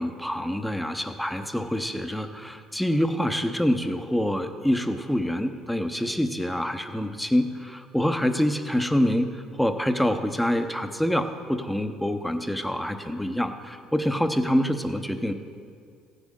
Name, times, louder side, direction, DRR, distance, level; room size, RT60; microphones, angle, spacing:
voice 1, 0.0-15.3, equal, 5° left, 7 dB, 0.8 m, -26 dB
15.0 x 10.0 x 3.8 m, 2.2 s
supercardioid pair, 90°, 0 cm